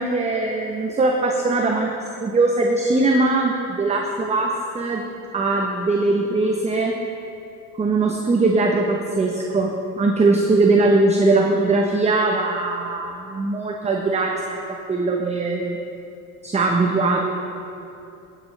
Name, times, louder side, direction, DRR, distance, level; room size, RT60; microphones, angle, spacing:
voice 1, 0.0-1.9 2.2-5.0 5.3-6.9 7.8-14.6 14.9-15.8 16.4-17.3, right 3 dB, 15° right, 1 dB, 0.8 m, -20 dB
14.5 x 9.2 x 3.2 m, 2.7 s
supercardioid pair, 95°, 41 cm